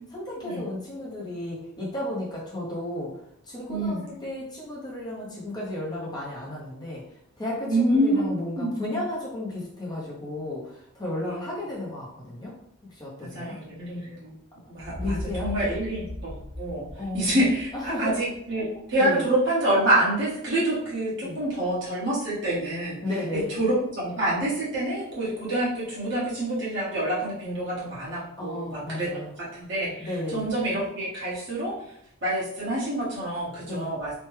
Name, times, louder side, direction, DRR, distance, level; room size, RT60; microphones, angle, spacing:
voice 1, 0.1-3.1 3.5-7.0 7.4-12.5 13.0-13.6 15.0-15.5 17.0-17.5 17.7-18.1 19.0-19.2 21.2-21.4 23.0-23.6 28.4-29.3 30.0-30.5 33.6-33.9, left 1 dB, 20° left, -5 dB, 0.7 m, -33 dB
voice 2, 3.7-4.0 7.7-8.7 13.2-14.3 14.7-16.8 17.1-23.0 23.3-29.1 29.4-31.7 32.2-34.1, right 1 dB, 55° right, -7 dB, 1.3 m, -27 dB
sound 1, 14.8-18.6, left 1 dB, 70° left, 0.9 m, -38 dB
3.2 x 2.2 x 3.2 m, 0.73 s
head